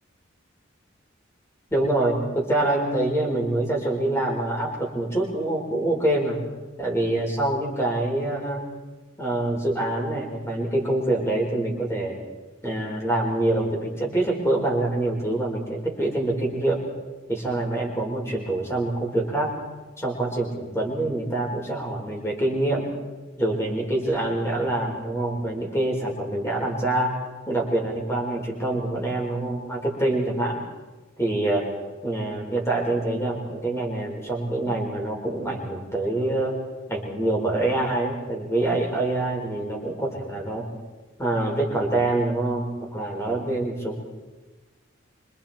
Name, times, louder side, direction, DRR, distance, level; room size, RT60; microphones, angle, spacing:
voice 1, 1.7-6.4 6.8-8.6 9.2-12.2 12.6-16.8 17.3-19.5 20.0-22.9 23.4-27.1 27.5-30.6 31.2-31.7 32.0-36.6 36.9-40.6 41.2-44.0, right 2 dB, 15° left, -1 dB, 5.0 m, -25 dB
26.0 x 25.5 x 4.5 m, 1.2 s
head